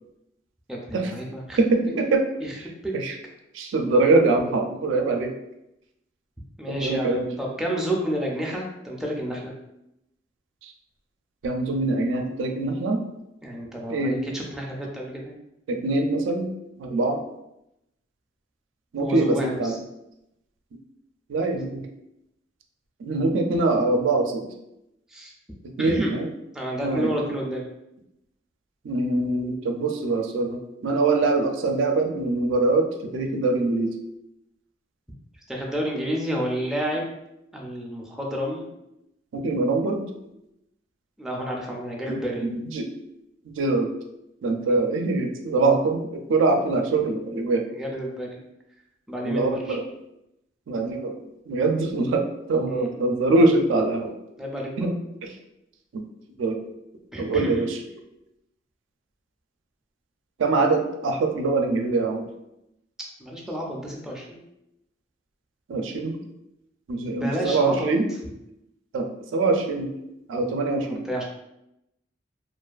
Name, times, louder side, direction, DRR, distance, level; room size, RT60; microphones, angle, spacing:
voice 1, 0.7-1.6 2.4-2.6 2.8-2.9 6.6-9.5 13.4-15.4 19.0-19.8 25.1-25.3 25.8-26.1 26.5-27.6 35.5-37.1 37.5-38.7 41.2-42.5 44.7-44.8 47.8-48.4 49.1-49.8 52.7-52.9 54.4-54.9 57.1-57.6 63.2-64.4 67.1-67.9 70.8-71.2, equal, 5° right, -2 dB, 0.3 m, -30 dB
voice 2, 1.6-2.2 2.9-3.1 3.5-5.3 6.7-7.3 11.4-13.0 13.9-14.2 15.7-16.5 16.8-17.2 18.9-19.7 21.3-21.9 23.0-24.5 25.8-26.3 26.8-27.1 28.8-33.9 39.3-40.1 42.1-42.9 43.5-43.9 44.4-47.7 49.2-49.8 50.7-51.2 51.5-52.2 52.5-54.1 54.8-54.9 55.2-55.3 55.9-56.1 56.4-56.6 57.2-57.8 60.4-62.3 65.7-66.2 66.9-68.1 68.9-69.9 70.3-71.0, right 3 dB, 85° right, 4 dB, 0.4 m, -23 dB
2.4 x 2.3 x 2.3 m, 0.85 s
head